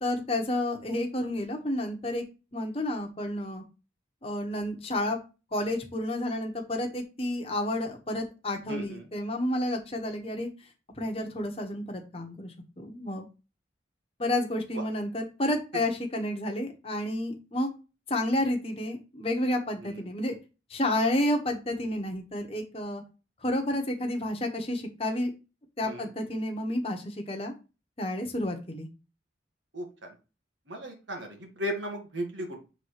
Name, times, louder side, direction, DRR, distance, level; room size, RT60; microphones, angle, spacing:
voice 1, 0.0-2.2 2.5-3.6 4.2-5.2 5.5-10.5 11.0-13.3 14.2-17.7 18.1-20.3 20.7-23.0 23.4-25.3 25.8-27.5 28.0-28.9, left 1 dB, 30° left, 3 dB, 1.1 m, -30 dB
voice 2, 8.7-9.1 14.7-14.8 19.8-20.0 25.8-26.1 29.7-30.1 30.7-32.6, equal, 90° right, 3 dB, 1.9 m, -36 dB
5.7 x 3.7 x 4.8 m, 0.30 s
head